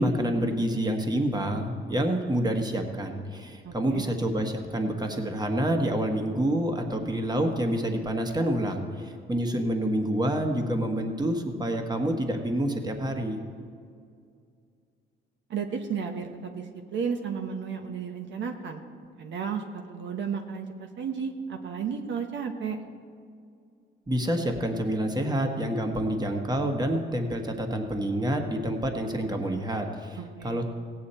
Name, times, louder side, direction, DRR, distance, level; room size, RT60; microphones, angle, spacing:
voice 1, 0.0-13.4 24.1-30.6, right 1 dB, 20° right, 4 dB, 1.4 m, -28 dB
voice 2, 3.6-4.0 15.5-16.6 16.9-18.8 19.2-22.8 30.2-30.6, right 6 dB, 70° right, 5 dB, 1.0 m, -33 dB
17.0 x 8.6 x 4.3 m, 2.3 s
cardioid pair, 90°, 20 cm